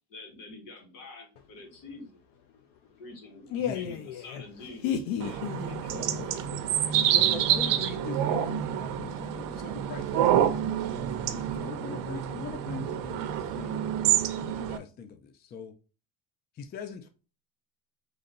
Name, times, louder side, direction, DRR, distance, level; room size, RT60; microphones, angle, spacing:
voice 1, 0.1-2.2 3.0-3.5 3.7-3.9 4.2-4.8 5.3-5.4 5.7-5.9, left 3 dB, 65° left, 2.0 m, -46 dB
voice 2, 3.5-7.1, left 8 dB, 80° left, 0.7 m, -35 dB
sound 1, 5.2-14.8, right 10 dB, 65° right, 0.7 m, -28 dB
voice 3, 7.1-13.8 14.3-15.7 16.6-17.1, left 6 dB, 30° left, 0.4 m, -42 dB
4.0 x 3.2 x 3.9 m
cardioid pair, 135°, 35 cm